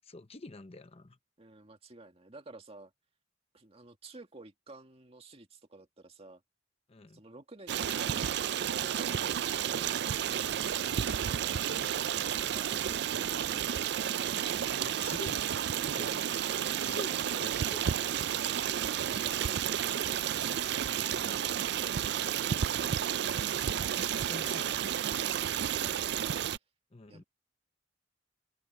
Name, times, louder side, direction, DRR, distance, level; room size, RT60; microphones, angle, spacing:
voice 1, 0.0-1.2 6.9-7.2 11.2-11.9 14.7-15.6 15.9-16.2 16.8-18.0 24.1-24.8 26.9-27.2, left 2 dB, 35° left, 0.9 m, -47 dB
voice 2, 1.4-2.9 3.5-6.4 7.1-8.4 12.4-14.2 17.0-19.6 19.9-21.7 24.1-24.9 27.1-27.2, right 2 dB, 35° right, 2.0 m, -52 dB
Stream, 7.7-26.6, right 9 dB, 65° right, 0.4 m, -31 dB
open air
head